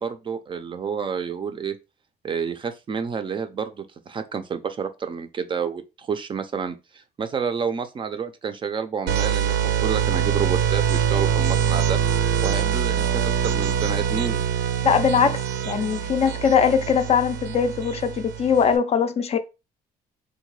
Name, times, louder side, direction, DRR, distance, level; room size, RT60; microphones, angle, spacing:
voice 1, 0.0-1.8 2.2-12.0 12.4-14.4, right 6 dB, 30° right, 0.4 m, -29 dB
sound 1, 9.1-18.8, right 9 dB, 80° right, 0.5 m, -24 dB
voice 2, 14.8-15.4 15.7-19.4, left 7 dB, 40° left, 0.4 m, -21 dB
3.6 x 2.2 x 3.1 m
cardioid pair, 110°, 17 cm